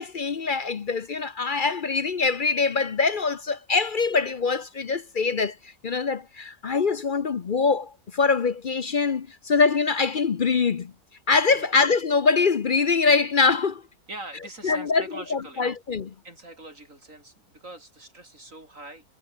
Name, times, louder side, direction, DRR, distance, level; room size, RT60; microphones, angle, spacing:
voice 1, 0.0-5.6 5.8-10.9 11.3-13.8 14.6-15.0 15.3-16.1, left 4 dB, 45° left, 0.8 m, -23 dB
voice 2, 14.1-15.8 16.2-19.0, right 2 dB, 60° right, 6.9 m, -43 dB
omnidirectional pair, 1.5 m